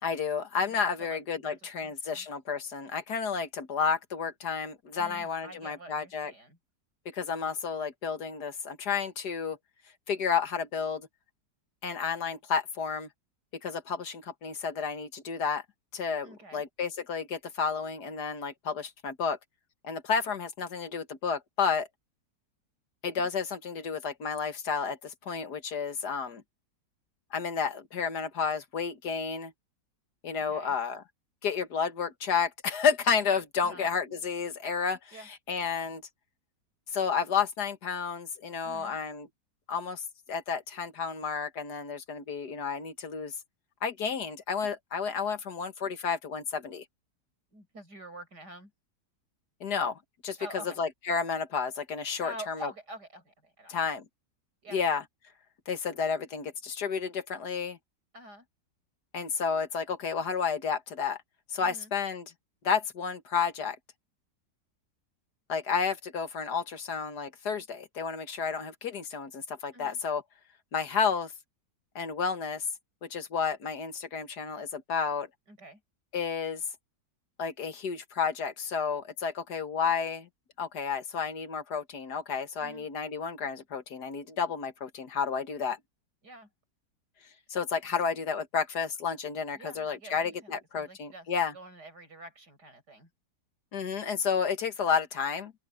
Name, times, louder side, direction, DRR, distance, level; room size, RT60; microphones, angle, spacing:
voice 1, 0.0-6.3 7.1-9.6 10.1-11.1 11.8-13.1 13.6-15.6 15.9-19.4 19.8-21.9 23.0-26.4 27.3-29.5 30.2-31.0 31.4-36.0 36.9-39.3 39.7-40.0 40.3-43.3 43.8-46.8 49.6-50.0 50.2-52.7 53.7-54.1 54.7-55.0 55.7-57.8 59.1-61.2 61.5-62.3 62.6-63.8 65.5-70.2 70.7-71.3 72.0-72.6 73.0-75.3 76.1-76.6 77.4-80.3 80.6-85.8 87.5-91.5 93.7-95.5, left 6 dB, 70° left, 2.1 m, -31 dB
voice 2, 0.6-2.3 5.0-6.6 16.2-16.6 30.5-30.8 33.6-33.9 35.1-35.3 38.6-39.0 47.5-48.7 50.4-50.8 52.2-53.8 54.6-54.8 58.1-58.5 61.6-61.9 69.7-70.0 75.5-75.8 82.6-82.9 86.2-86.5 89.5-91.3 91.5-93.1, right 1 dB, 70° right, 8.5 m, -47 dB
open air
omnidirectional pair, 1.8 m